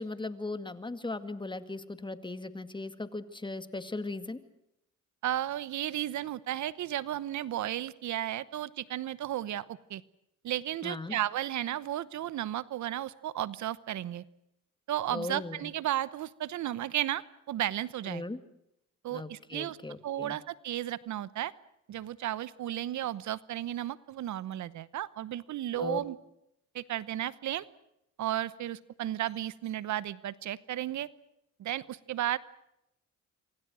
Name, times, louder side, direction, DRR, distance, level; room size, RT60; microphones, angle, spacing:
voice 1, 0.0-4.4 10.8-11.2 15.1-15.7 18.1-18.4 19.1-20.4 25.8-26.0, left 2 dB, 15° left, 11 dB, 2.0 m, -38 dB
voice 2, 5.2-10.0 10.4-14.2 14.9-18.2 19.0-19.8 20.0-21.5 21.9-26.2 26.7-27.6 28.2-31.1 31.6-32.4, right 12 dB, 70° right, 18 dB, 1.0 m, -34 dB
27.5 x 24.5 x 6.3 m, 0.82 s
cardioid pair, 90°, 30 cm